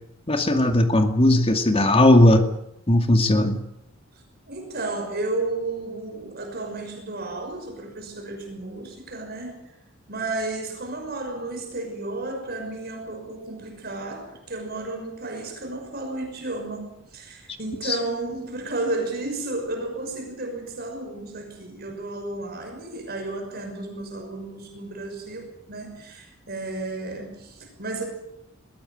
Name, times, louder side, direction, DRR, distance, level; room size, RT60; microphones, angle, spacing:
voice 1, 0.3-2.5 2.9-3.6 17.9-18.0, left 1 dB, 30° left, 6 dB, 2.3 m, -17 dB
voice 2, 4.5-9.6 10.1-28.1, right 2 dB, 50° right, 3 dB, 6.0 m, -32 dB
21.0 x 17.5 x 8.9 m, 0.79 s
head